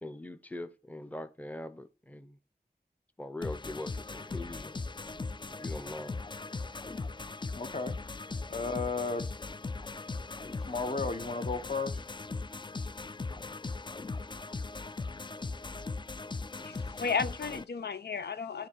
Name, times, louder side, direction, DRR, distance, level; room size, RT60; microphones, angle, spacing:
voice 1, 0.0-2.4 3.2-4.8 5.5-6.5, left 1 dB, 10° left, 0.8 m, -42 dB
sound 1, 3.4-17.6, left 3 dB, 30° left, 0.4 m, -39 dB
voice 2, 7.5-8.0 8.5-9.3 10.7-12.1, left 3 dB, 45° left, 1.2 m, -34 dB
voice 3, 16.6-18.7, left 5 dB, 85° left, 0.5 m, -33 dB
9.4 x 3.7 x 4.6 m
wide cardioid pair, 45°, 17 cm